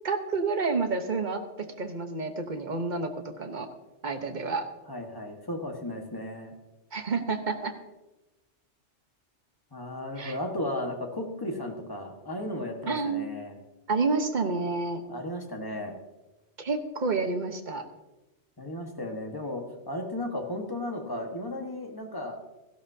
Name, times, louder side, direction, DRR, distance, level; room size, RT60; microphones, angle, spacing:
voice 1, 0.0-3.7 4.0-4.7 6.9-7.7 10.2-10.4 12.9-13.3 13.9-15.0 16.6-17.8, right 4 dB, 45° right, 6 dB, 1.2 m, -29 dB
voice 2, 4.9-6.5 9.7-13.5 15.1-15.9 18.6-22.4, left 1 dB, 20° left, 3 dB, 1.5 m, -35 dB
17.0 x 14.5 x 2.8 m, 1.1 s
omnidirectional pair, 1.2 m